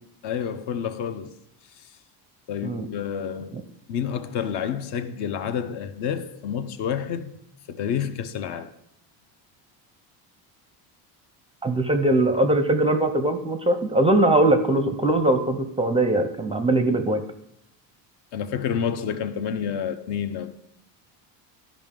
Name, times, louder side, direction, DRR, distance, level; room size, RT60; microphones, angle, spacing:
voice 1, 0.2-1.3 2.5-3.6 3.9-7.4 7.7-8.7 18.3-20.6, left 8 dB, 60° left, 0.8 m, -29 dB
voice 2, 11.6-17.2, right 1 dB, 15° right, 0.5 m, -21 dB
12.5 x 5.1 x 3.7 m
cardioid pair, 125°, 46 cm